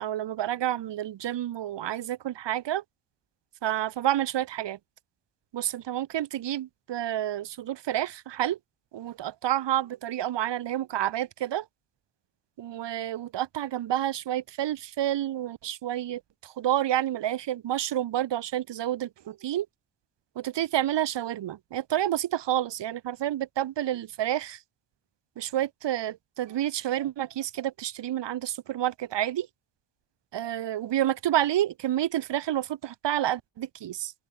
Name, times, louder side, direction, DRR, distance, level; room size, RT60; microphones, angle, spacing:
voice 1, 0.0-2.8 3.6-4.8 5.5-8.6 8.9-11.6 12.6-19.7 20.4-24.6 25.4-29.5 30.3-34.1, right 12 dB, 75° right, 2.5 m, -29 dB
open air
cardioid pair, 120°, 43 cm